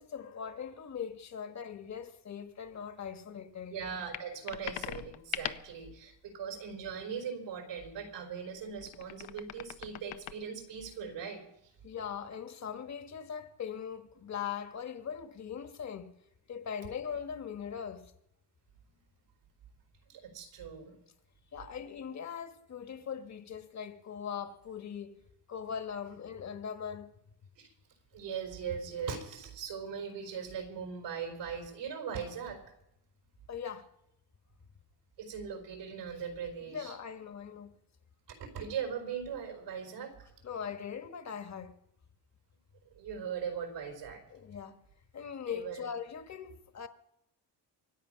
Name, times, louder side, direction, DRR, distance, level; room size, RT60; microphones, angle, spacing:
voice 1, 0.0-3.8 11.8-16.1 16.5-18.1 21.5-25.2 25.5-27.1 33.5-33.9 36.7-37.7 40.4-41.8 44.3-44.8 45.1-46.9, left 7 dB, 40° left, 1.3 m, -40 dB
voice 2, 3.7-11.7 20.1-21.0 27.6-27.7 28.1-32.6 35.2-37.0 38.3-40.3 42.9-44.2 45.5-45.9, right 7 dB, 85° right, 4.5 m, -40 dB
sound 1, 4.1-5.8 8.6-10.3, left 14 dB, 85° left, 0.7 m, -41 dB
25.0 x 8.8 x 5.7 m
cardioid pair, 125°, 42 cm